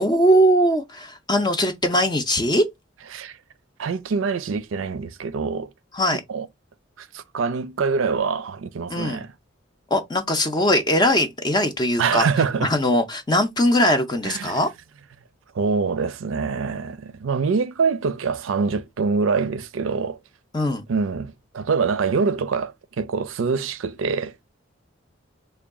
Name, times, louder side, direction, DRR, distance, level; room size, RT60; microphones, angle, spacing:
voice 1, 0.0-2.6 5.9-6.2 8.9-9.2 9.9-12.3 12.6-14.7 20.5-20.9, equal, 20° left, 0.4 m, -20 dB
voice 2, 3.8-5.7 6.3-6.5 7.0-9.3 12.0-12.7 14.2-14.6 15.6-20.2 20.9-24.3, right 5 dB, 85° right, 0.4 m, -25 dB
3.4 x 2.2 x 3.5 m
head